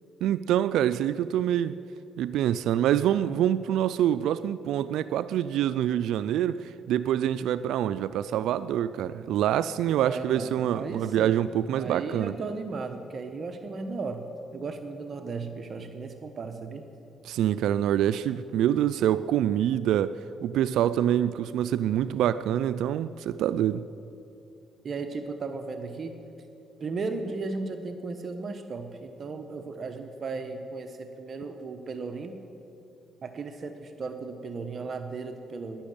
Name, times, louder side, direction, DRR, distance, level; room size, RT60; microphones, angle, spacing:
voice 1, 0.2-1.8 2.2-12.3 17.2-20.2 20.4-23.8, right 11 dB, 85° right, 14 dB, 0.3 m, -26 dB
voice 2, 10.0-11.4 11.7-14.2 14.5-16.8 24.8-26.2 26.8-32.4 33.2-35.8, right 4 dB, 45° right, 7 dB, 1.0 m, -35 dB
11.5 x 10.5 x 8.7 m, 2.8 s
cardioid pair, 90°, 0 cm